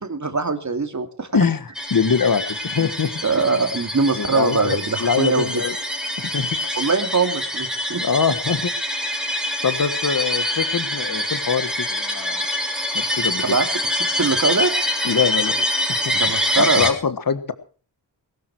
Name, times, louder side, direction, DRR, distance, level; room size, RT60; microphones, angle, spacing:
voice 1, 0.0-1.3 2.8-2.9 3.2-5.6 6.8-8.0 13.4-13.7 14.0-14.7 16.1-16.9, right 4 dB, 40° right, 7 dB, 2.5 m, -22 dB
voice 2, 1.3-3.2 4.2-5.8 6.2-6.5 8.0-8.7 9.6-12.4 12.9-13.6 15.0-16.1 16.6-17.5, left 6 dB, 50° left, 12 dB, 1.5 m, -23 dB
sound 1, 1.8-16.9, left 1 dB, ahead, 4.0 m, -25 dB
21.0 x 12.5 x 4.8 m, 0.40 s
wide cardioid pair, 135°, 45 cm